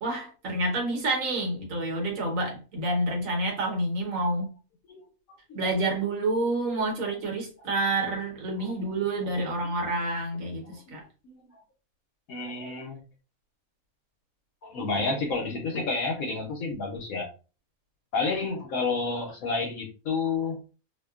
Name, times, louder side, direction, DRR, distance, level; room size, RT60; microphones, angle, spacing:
voice 1, 0.0-4.5 5.5-10.6 10.9-11.0, right 2 dB, 65° right, 1.2 m, -28 dB
voice 2, 9.6-9.9 10.5-11.0 11.2-11.4 12.3-13.0 14.6-17.3 18.1-20.6, left 4 dB, 70° left, 1.0 m, -30 dB
2.7 x 2.2 x 2.3 m
omnidirectional pair, 1.6 m